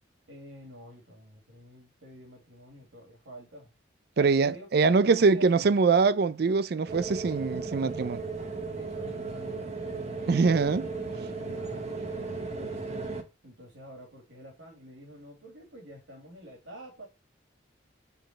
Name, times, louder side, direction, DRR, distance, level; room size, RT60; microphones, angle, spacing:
voice 1, 0.3-3.7 4.1-5.7 8.7-10.9 11.4-12.9 13.4-17.1, right 1 dB, 85° right, 2.3 m, -48 dB
voice 2, 4.2-8.2 10.3-10.9, right 4 dB, 55° right, 0.4 m, -23 dB
sound 1, 6.9-13.2, right 4 dB, 35° right, 1.1 m, -36 dB
6.9 x 3.9 x 6.4 m
head